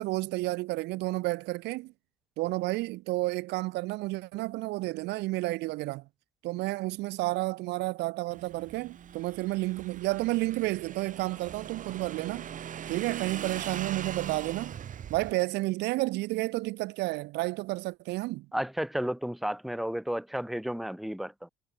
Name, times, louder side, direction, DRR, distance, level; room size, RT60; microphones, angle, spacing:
voice 1, 0.0-1.9 2.4-6.0 6.4-12.5 12.9-14.8 15.1-18.5, right 20 dB, 90° right, 1.5 m, -31 dB
Motorcycle / Engine, 8.3-15.3, right 9 dB, 50° right, 5.0 m, -41 dB
voice 2, 18.5-21.5, equal, ahead, 1.3 m, -32 dB
cardioid pair, 110°, 17 cm